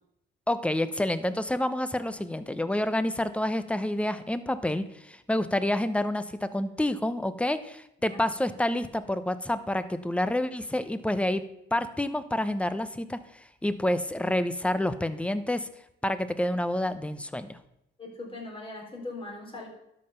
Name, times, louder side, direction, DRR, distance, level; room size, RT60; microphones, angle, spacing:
voice 1, 0.5-11.4 11.7-13.2 13.6-15.7 16.0-17.5, left 1 dB, 5° left, 12 dB, 0.8 m, -28 dB
voice 2, 18.0-19.7, left 2 dB, 25° left, -1 dB, 3.5 m, -40 dB
12.0 x 5.5 x 5.8 m, 0.82 s
cardioid pair, 90°, 20 cm